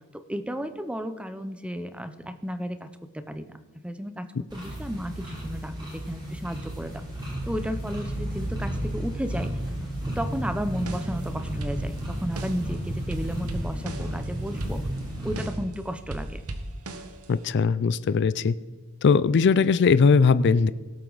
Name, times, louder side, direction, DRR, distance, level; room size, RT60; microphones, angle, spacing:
voice 1, 0.1-2.9 3.1-3.6 3.8-4.3 4.5-7.0 7.4-9.5 10.2-14.8 15.2-16.4, equal, 5° right, 10 dB, 0.6 m, -33 dB
sound 1, 4.5-15.5, right 1 dB, 20° right, 3.6 m, -33 dB
sound 2, 10.7-11.3 11.6-12.7 13.1-15.7 16.1-17.5, right 1 dB, 85° right, 1.1 m, -37 dB
voice 2, 17.3-18.6 19.0-20.7, left 5 dB, 50° left, 16 dB, 0.4 m, -20 dB
17.5 x 7.8 x 4.0 m, 1.4 s
head